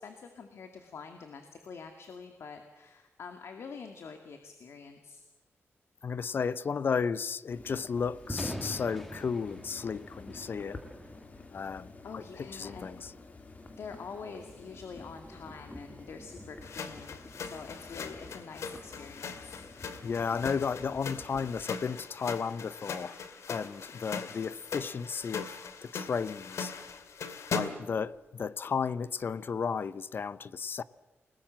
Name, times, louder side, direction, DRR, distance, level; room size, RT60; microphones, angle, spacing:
voice 1, 0.0-5.2 11.5-11.8 12.0-13.0 13.8-19.6, left 5 dB, 65° left, 2.3 m, -46 dB
voice 2, 6.0-10.8 11.5-13.1 20.0-23.1 23.5-25.5 25.8-26.7 27.5-30.8, left 6 dB, 50° left, 0.7 m, -33 dB
sound 1, 7.5-21.7, left 3 dB, 35° left, 2.6 m, -50 dB
Thunder, 8.1-22.3, equal, 5° left, 2.0 m, -48 dB
sound 2, 16.6-28.0, left 5 dB, 90° left, 2.3 m, -40 dB
29.0 x 19.5 x 7.6 m
wide cardioid pair, 145°, 5 cm